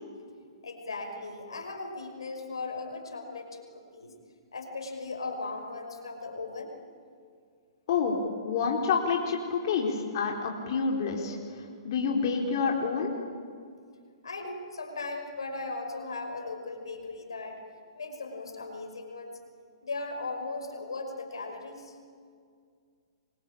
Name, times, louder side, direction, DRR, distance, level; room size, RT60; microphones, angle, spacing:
voice 1, 0.6-4.1 4.5-6.7 14.2-17.6 17.9-19.4 19.8-22.0, left 3 dB, 85° left, 4 dB, 5.7 m, -38 dB
voice 2, 7.9-13.1, left 5 dB, 55° left, 0 dB, 4.4 m, -28 dB
27.5 x 24.0 x 8.9 m, 2.2 s
hypercardioid pair, 125°, 3 cm